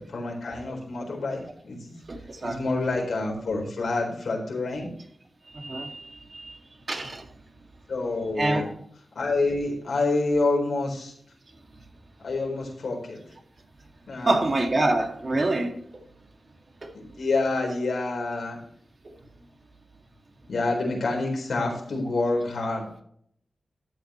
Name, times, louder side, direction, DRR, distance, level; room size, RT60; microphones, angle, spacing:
voice 1, 0.0-1.9 2.4-4.9 7.9-8.7 9.2-11.1 12.2-13.2 14.1-14.4 16.9-18.6 20.5-22.9, left 3 dB, 80° left, 3.9 m, -27 dB
voice 2, 2.1-2.6 5.5-6.6 6.9-7.3 8.4-8.7 14.2-16.0 16.8-16.9 19.0-19.1, right 2 dB, 45° right, 2.1 m, -26 dB
13.0 x 7.8 x 3.1 m
wide cardioid pair, 90°, 0 cm